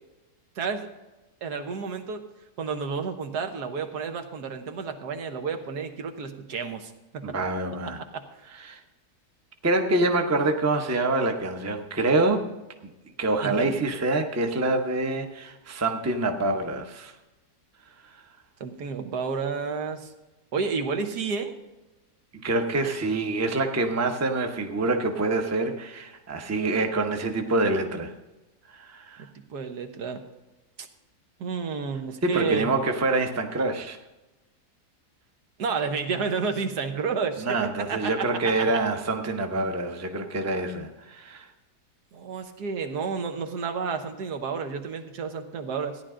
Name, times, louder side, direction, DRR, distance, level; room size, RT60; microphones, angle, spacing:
voice 1, 0.6-0.9 1.4-2.2 2.6-7.2 8.1-8.2 13.4-13.7 18.6-20.1 20.5-21.5 29.5-30.2 31.4-32.7 35.6-38.5 42.1-46.0, right 5 dB, 85° right, 6 dB, 1.6 m, -31 dB
voice 2, 7.2-8.0 8.5-8.8 9.6-12.5 12.8-12.9 13.2-17.1 22.3-28.1 28.7-29.3 32.2-34.0 37.5-41.5, right 2 dB, 15° right, 5 dB, 0.6 m, -26 dB
14.5 x 10.0 x 3.8 m, 1.1 s
omnidirectional pair, 1.7 m